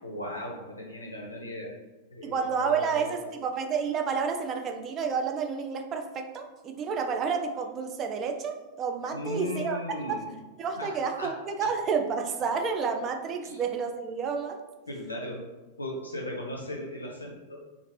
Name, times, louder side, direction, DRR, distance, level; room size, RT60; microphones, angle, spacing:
voice 1, 0.0-1.7 2.1-3.1 9.1-10.3 10.7-11.3 13.4-13.6 14.9-15.4 15.8-17.6, left 1 dB, 80° left, -1 dB, 0.5 m, -37 dB
voice 2, 2.2-9.8 10.1-10.2 10.6-14.6, right 5 dB, 30° right, 5 dB, 0.3 m, -30 dB
2.8 x 2.5 x 2.9 m, 1.2 s
figure-of-eight pair, 90°, 0 cm